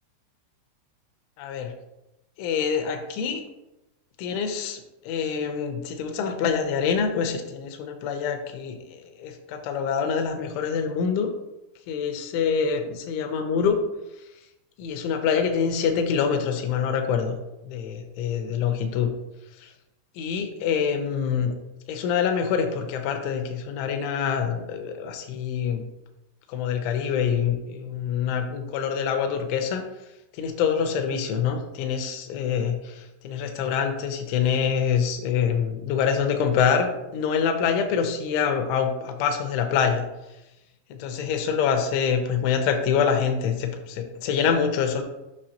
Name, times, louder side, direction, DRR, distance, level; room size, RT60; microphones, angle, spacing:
voice 1, 1.4-1.7 2.4-3.4 4.2-11.3 11.9-13.8 14.8-17.4 17.7-19.1 19.6-19.7 20.2-21.5 21.9-25.9 26.5-29.8 30.3-40.0 41.0-45.0, left 7 dB, 80° left, 5 dB, 3.0 m, -25 dB
8.7 x 5.6 x 2.8 m, 0.95 s
omnidirectional pair, 5.8 m